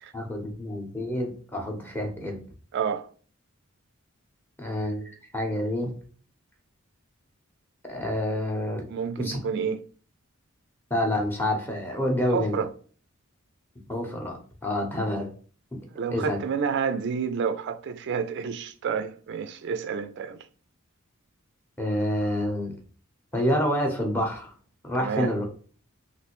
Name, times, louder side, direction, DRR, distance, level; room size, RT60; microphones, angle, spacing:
voice 1, 0.1-2.4 4.6-5.9 7.9-8.9 9.2-9.4 10.9-12.6 13.9-15.3 15.7-15.8 16.1-16.4 21.8-22.8 23.3-24.5 24.8-25.5, left 1 dB, 10° left, 0.7 m, -28 dB
voice 2, 2.7-3.1 8.9-9.8 12.3-12.7 15.9-20.4 25.0-25.3, right 6 dB, 55° right, 0.3 m, -29 dB
3.2 x 2.5 x 2.9 m
head